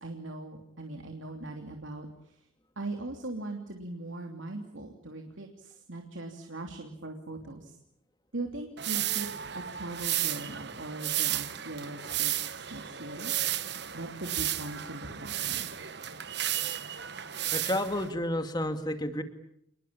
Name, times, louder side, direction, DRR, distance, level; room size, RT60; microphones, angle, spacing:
voice 1, 0.0-2.4 2.8-7.8 8.3-9.3 9.5-13.3 13.9-15.7, right 2 dB, 70° right, 4 dB, 3.0 m, -40 dB
sound 1, 8.8-18.1, right 12 dB, 55° right, 1.3 m, -33 dB
voice 2, 17.5-19.2, left 1 dB, 20° left, 8 dB, 2.4 m, -31 dB
29.0 x 21.0 x 8.9 m, 0.72 s
head